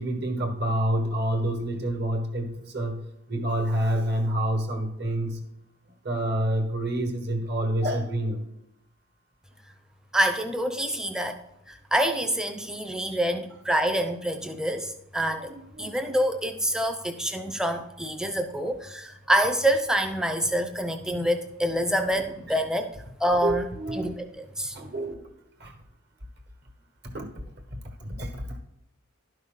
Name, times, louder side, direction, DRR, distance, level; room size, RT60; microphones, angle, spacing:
voice 1, 0.0-3.0 3.3-5.4 6.0-8.4 15.4-15.9 22.5-22.6 23.4-24.1 24.7-25.2 25.6-25.7 27.1-27.3 28.2-28.4, right 1 dB, 50° right, 4 dB, 1.5 m, -28 dB
voice 2, 10.1-11.4 11.7-15.5 15.8-22.9 23.2-23.6 23.9-24.8, right 1 dB, 5° right, 6 dB, 0.6 m, -26 dB
11.5 x 5.7 x 3.9 m, 0.83 s
head